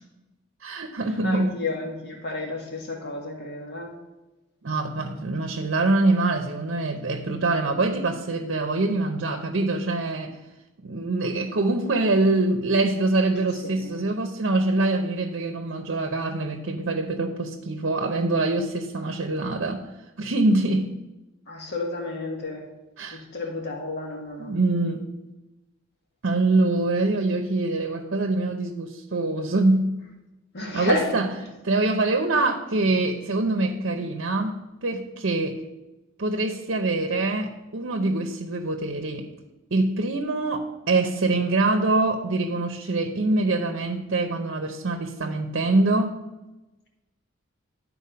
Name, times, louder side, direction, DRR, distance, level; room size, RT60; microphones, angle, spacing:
voice 1, 0.6-1.6 4.6-10.4 10.8-19.9 20.2-20.9 23.0-23.2 24.4-25.1 26.2-29.9 30.7-31.3 31.6-34.6 34.8-35.6 36.2-39.3 39.7-46.2, right 2 dB, 60° right, 5 dB, 0.8 m, -24 dB
voice 2, 1.2-3.9 13.6-14.0 21.5-22.6 23.1-24.5 30.5-31.1, left 2 dB, 55° left, 0 dB, 1.7 m, -31 dB
11.0 x 4.4 x 5.6 m, 1.0 s
head